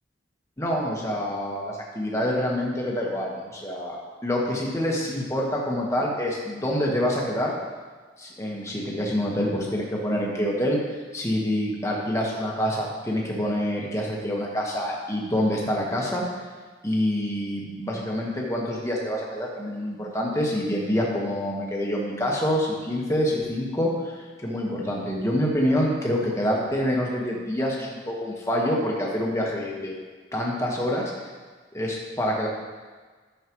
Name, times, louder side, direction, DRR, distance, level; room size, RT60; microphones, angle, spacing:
voice 1, 0.6-4.0 4.2-7.5 8.2-16.2 16.8-29.9 30.3-31.3 31.7-32.5, equal, 15° left, -2 dB, 1.3 m, -26 dB
13.0 x 6.7 x 3.1 m, 1.4 s
head